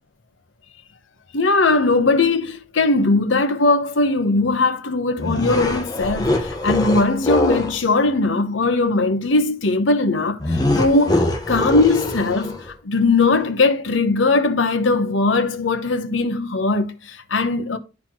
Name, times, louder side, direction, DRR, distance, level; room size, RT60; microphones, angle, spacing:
voice 1, 1.3-17.8, left 3 dB, 85° left, 1.0 m, -19 dB
sound 1, 5.2-7.8 10.4-12.7, left 2 dB, 20° left, 1.4 m, -23 dB
11.5 x 4.2 x 3.0 m
head